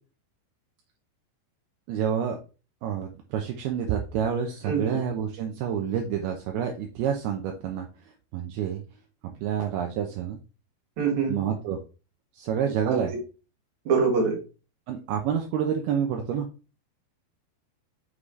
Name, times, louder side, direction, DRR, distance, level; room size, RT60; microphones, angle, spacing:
voice 1, 1.9-2.4 2.8-7.9 8.3-8.8 9.2-10.4 11.3-11.8 12.3-13.1 14.9-16.5, right 8 dB, 80° right, 2 dB, 2.4 m, -28 dB
voice 2, 4.7-5.0 11.0-11.4 12.9-13.0 13.9-14.4, right 5 dB, 50° right, 1 dB, 2.8 m, -24 dB
7.5 x 4.9 x 3.2 m, 0.33 s
omnidirectional pair, 5.2 m